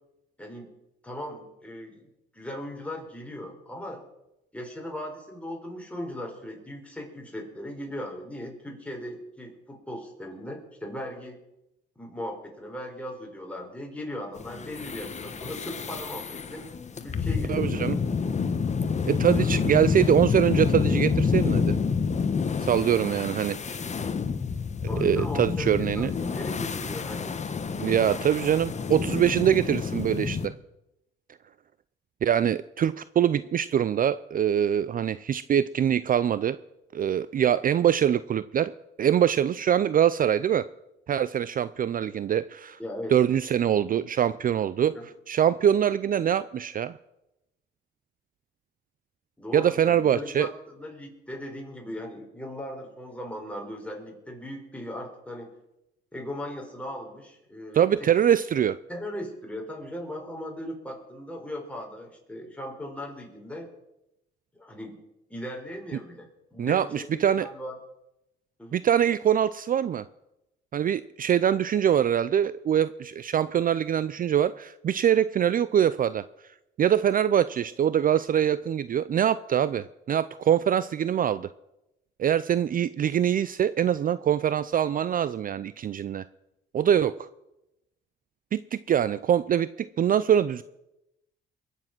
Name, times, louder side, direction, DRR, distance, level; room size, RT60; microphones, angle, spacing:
voice 1, 0.4-0.7 1.0-2.1 2.3-4.0 4.5-11.4 12.0-16.6 17.0-17.7 24.9-27.4 42.8-43.2 43.9-44.1 44.9-45.1 49.4-55.5 56.1-58.1 58.9-63.7 64.5-65.0 65.3-67.8 68.6-68.8, left 1 dB, 5° left, 0 dB, 4.4 m, -38 dB
sound 1, 14.4-30.5, left 5 dB, 35° left, 1.1 m, -28 dB
voice 2, 17.5-18.0 19.1-21.7 22.6-23.8 25.0-26.1 27.8-30.5 32.2-36.6 36.9-38.7 39.0-40.7 41.1-42.8 43.1-44.9 45.3-46.9 49.5-50.5 57.7-58.8 66.6-67.5 68.7-70.0 70.7-76.2 76.8-81.5 82.2-86.2 86.7-87.3 88.5-90.6, right 9 dB, 45° right, 16 dB, 0.4 m, -24 dB
22.0 x 7.5 x 6.0 m, 0.89 s
cardioid pair, 90°, 20 cm